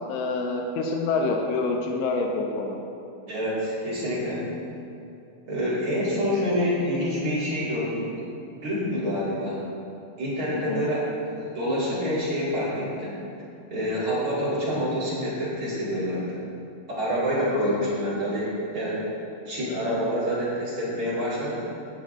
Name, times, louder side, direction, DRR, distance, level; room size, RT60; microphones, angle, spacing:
voice 1, 0.0-2.8 10.5-10.9 17.3-17.8, left 3 dB, 85° left, 1 dB, 2.7 m, -27 dB
voice 2, 3.3-4.4 5.5-8.2 8.5-9.6 10.2-13.1 13.7-16.2 17.0-19.0 19.5-21.6, equal, 40° right, -10 dB, 2.5 m, -27 dB
13.5 x 7.3 x 2.6 m, 2.7 s
omnidirectional pair, 4.4 m